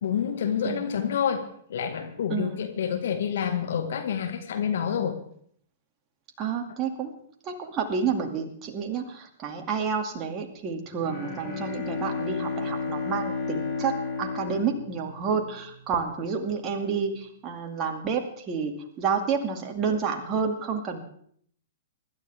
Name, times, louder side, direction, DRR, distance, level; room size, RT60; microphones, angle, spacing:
voice 1, 0.0-5.2, left 8 dB, 60° left, 6 dB, 1.7 m, -28 dB
voice 2, 2.3-2.6 6.4-7.1 7.4-21.0, right 6 dB, 25° right, 3 dB, 2.3 m, -29 dB
Bowed string instrument, 10.9-15.8, left 4 dB, 5° left, 6.8 m, -32 dB
24.5 x 12.0 x 3.5 m, 0.63 s
figure-of-eight pair, 110°, 0 cm